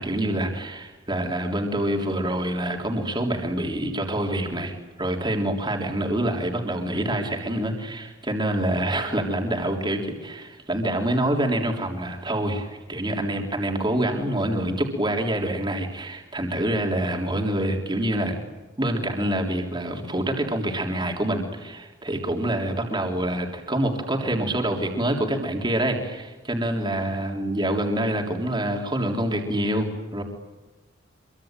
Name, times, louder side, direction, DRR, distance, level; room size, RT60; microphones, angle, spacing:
voice 1, 0.0-4.7 5.0-18.4 18.8-30.2, right 1 dB, 25° right, 2 dB, 3.7 m, -26 dB
26.5 x 24.0 x 9.1 m, 1.2 s
head